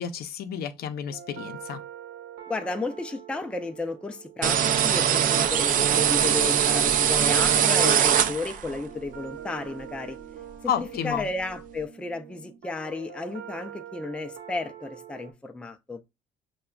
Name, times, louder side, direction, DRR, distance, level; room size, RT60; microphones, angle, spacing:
voice 1, 0.0-1.8 10.7-11.3, left 9 dB, 65° left, 0.6 m, -31 dB
sound 1, 1.1-15.3, right 9 dB, 70° right, 0.9 m, -44 dB
voice 2, 2.5-10.2 10.6-16.0, left 3 dB, 5° left, 0.4 m, -33 dB
sound 2, 4.4-8.8, right 9 dB, 55° right, 0.4 m, -22 dB
5.7 x 2.2 x 2.3 m
cardioid pair, 110°, 17 cm